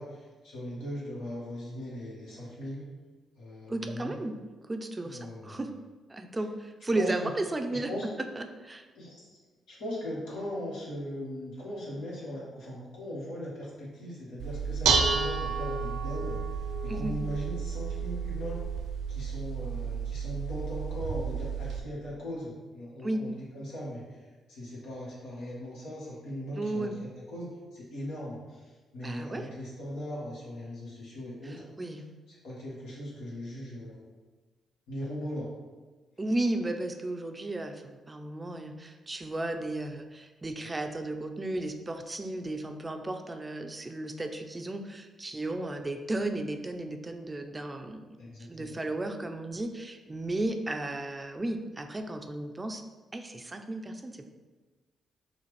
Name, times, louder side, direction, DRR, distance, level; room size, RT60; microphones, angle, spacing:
voice 1, 0.0-2.8 3.4-4.2 5.0-5.6 6.9-7.3 7.7-8.1 8.9-9.4 9.7-18.6 19.1-24.2 24.5-26.9 27.3-31.7 31.9-32.0 32.3-34.1 34.9-35.5 48.2-48.8, equal, 90° left, -7 dB, 1.5 m, -39 dB
voice 2, 3.7-4.3 4.6-5.7 6.1-7.9 8.2-8.9 16.9-17.2 23.0-23.3 26.5-27.0 29.0-29.5 31.4-32.1 36.2-48.2 48.5-52.8 53.1-54.2, right 2 dB, 25° right, 6 dB, 0.4 m, -34 dB
Dishes pots and pans, 14.4-21.8, right 5 dB, 85° right, 0.4 m, -31 dB
5.7 x 2.4 x 3.2 m, 1.3 s
supercardioid pair, 65°, 0 cm